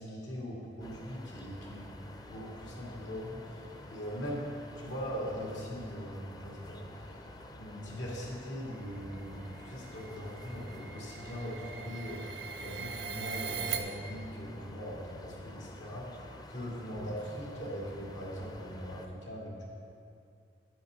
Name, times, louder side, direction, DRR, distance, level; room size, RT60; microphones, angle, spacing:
voice 1, 0.0-1.9 2.3-3.6 3.9-6.8 7.1-7.2 7.6-12.2 12.6-19.7, equal, 85° left, -4 dB, 2.4 m, -40 dB
sound 1, 0.8-19.1, left 1 dB, 20° left, 0.5 m, -49 dB
sound 2, 9.0-13.8, right 7 dB, 85° right, 0.8 m, -41 dB
10.0 x 9.0 x 4.0 m, 2.4 s
head